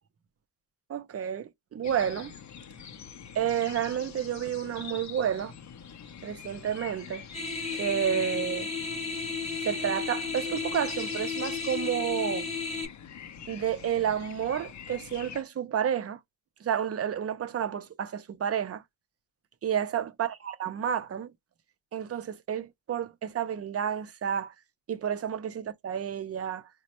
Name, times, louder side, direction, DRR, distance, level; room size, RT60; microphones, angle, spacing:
voice 1, 0.9-2.3 3.3-5.5 6.2-7.2 7.7-8.7 9.6-12.5 13.5-16.2 16.6-18.8 19.6-21.3 21.9-24.5 24.9-26.7, right 9 dB, 35° right, 0.5 m, -30 dB
sound 1, 1.8-15.4, left 7 dB, 45° left, 0.5 m, -45 dB
sound 2, 7.3-12.8, left 5 dB, 15° left, 0.8 m, -33 dB
4.0 x 2.1 x 2.8 m
cardioid pair, 105°, 43 cm